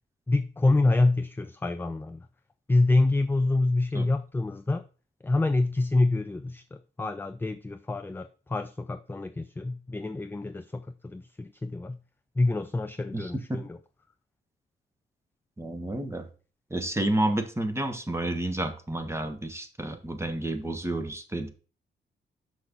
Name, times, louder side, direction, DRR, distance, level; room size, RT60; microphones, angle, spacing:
voice 1, 0.3-2.2 2.7-4.8 5.2-6.6 7.0-12.0 12.4-13.8, left 2 dB, 10° left, 0.4 m, -26 dB
voice 2, 13.1-13.6 15.6-16.2 16.7-21.5, right 1 dB, 10° right, 1.3 m, -30 dB
6.3 x 6.0 x 3.8 m
cardioid pair, 85°, 21 cm